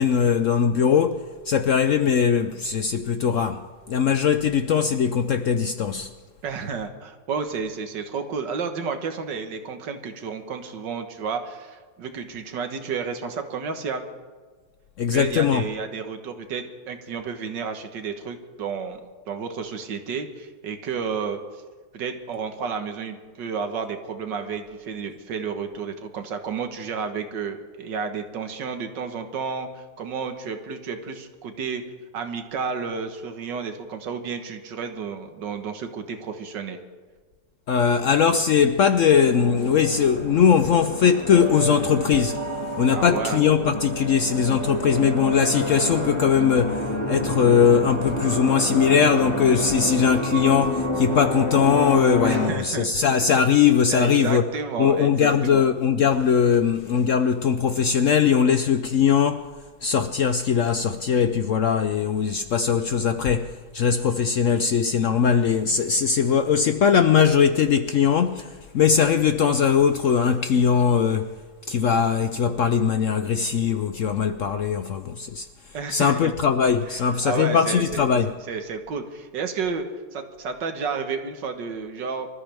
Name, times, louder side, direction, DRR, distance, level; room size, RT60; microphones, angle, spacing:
voice 1, 0.0-6.1 15.0-15.6 37.7-42.4 42.8-54.4 54.8-59.5 59.8-71.3 71.7-75.5 75.9-78.3, left 7 dB, 75° left, 0.7 m, -20 dB
voice 2, 6.4-14.0 15.1-19.0 19.3-21.4 21.9-31.8 32.1-36.8 42.9-43.4 52.2-53.1 53.9-55.6 75.7-76.3 76.9-78.1 78.4-79.8 80.1-82.3, right 5 dB, 75° right, 1.9 m, -31 dB
sound 1, 39.1-52.5, equal, 15° left, 1.9 m, -28 dB
25.5 x 13.5 x 3.5 m
omnidirectional pair, 2.0 m